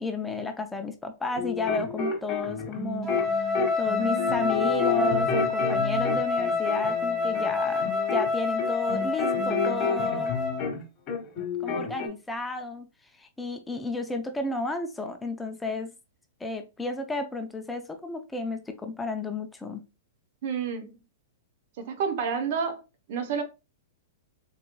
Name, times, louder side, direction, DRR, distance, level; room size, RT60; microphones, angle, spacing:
voice 1, 0.0-10.3 11.6-12.9 13.2-15.9 16.4-19.8, left 3 dB, 10° left, 0.4 m, -32 dB
sound 1, 1.3-10.8 11.1-12.1, left 4 dB, 35° left, 1.3 m, -30 dB
Wind instrument woodwind instrument, 3.0-10.7, left 4 dB, 20° right, 1.4 m, -27 dB
voice 2, 20.4-20.9 21.8-22.8 23.1-23.4, right 6 dB, 55° right, 0.8 m, -29 dB
3.9 x 2.9 x 2.2 m
hypercardioid pair, 120°, 0 cm